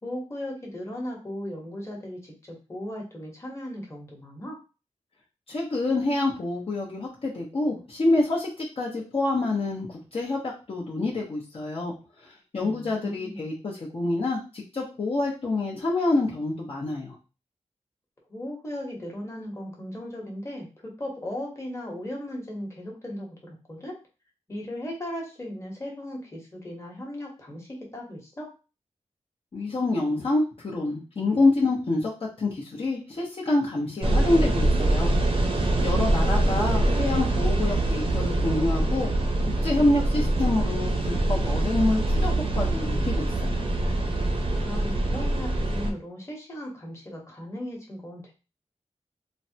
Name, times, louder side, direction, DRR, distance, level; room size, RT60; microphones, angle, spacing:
voice 1, 0.0-2.3 2.7-4.6 12.6-13.4 18.3-24.0 24.5-28.5 35.8-36.7 44.6-48.3, left 1 dB, 25° left, -2 dB, 1.0 m, -37 dB
voice 2, 5.5-11.9 12.2-17.1 29.5-32.1 32.4-35.1 35.5-39.1 39.5-43.6, left 2 dB, 50° left, -5 dB, 0.7 m, -27 dB
sound 1, 34.0-45.9, right 1 dB, 50° right, 0.6 m, -24 dB
3.2 x 2.1 x 2.7 m, 0.32 s
wide cardioid pair, 100°, 12 cm